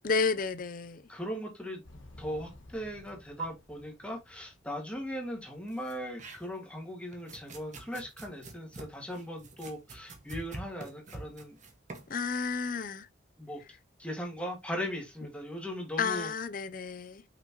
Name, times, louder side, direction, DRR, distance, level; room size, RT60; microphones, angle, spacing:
voice 1, 0.0-1.0 12.1-13.1 16.0-17.2, left 5 dB, 45° left, 0.6 m, -31 dB
voice 2, 1.1-1.8 2.2-11.6 13.4-13.6 14.0-16.3, equal, 5° left, 2.0 m, -38 dB
Motorcycle, 1.8-5.8, left 1 dB, 85° left, 1.5 m, -54 dB
sound 1, 3.1-3.2 3.4-3.5 5.7-6.7 7.1-12.1, right 3 dB, 40° right, 1.6 m, -45 dB
5.9 x 5.7 x 3.0 m
head